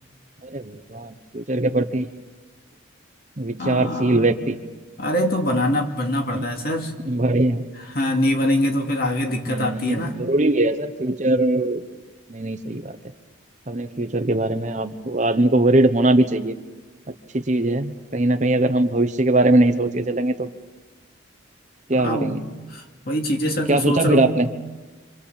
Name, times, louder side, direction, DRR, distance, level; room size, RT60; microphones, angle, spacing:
voice 1, 0.4-2.1 3.4-4.6 6.3-6.5 7.1-7.6 9.5-11.8 12.3-12.9 13.7-16.5 17.3-20.5 21.9-22.4 23.7-24.5, right 2 dB, 35° right, 9 dB, 1.1 m, -21 dB
voice 2, 3.6-4.3 5.0-7.0 7.9-10.2 22.0-22.4 22.7-24.3, left 1 dB, 50° left, 2 dB, 2.7 m, -24 dB
26.5 x 26.0 x 7.3 m, 1.3 s
head